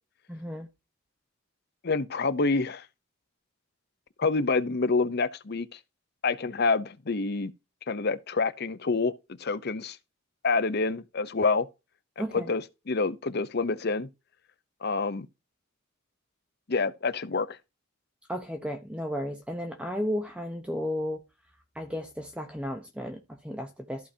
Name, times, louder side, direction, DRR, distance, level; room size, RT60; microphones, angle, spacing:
voice 1, 0.3-0.7 12.2-12.5 18.3-21.2 21.7-24.1, equal, 5° right, 0.8 m, -34 dB
voice 2, 1.8-2.8 4.2-5.8 6.2-7.5 7.9-9.1 9.4-10.0 10.4-11.7 12.2-14.1 14.8-15.3 16.7-17.6, left 4 dB, 50° left, 0.7 m, -27 dB
14.0 x 5.0 x 2.8 m
head